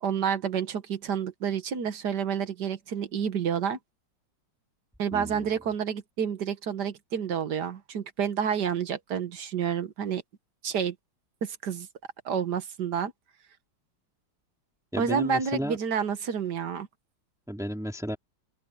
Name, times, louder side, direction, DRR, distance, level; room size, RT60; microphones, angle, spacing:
voice 1, 0.0-3.8 5.0-10.2 10.6-11.0 11.4-11.9 12.3-13.1 15.0-16.9, right 7 dB, 65° right, 1.9 m, -29 dB
voice 2, 5.1-5.5 14.9-15.8 17.5-18.2, equal, ahead, 3.1 m, -33 dB
open air
omnidirectional pair, 2.0 m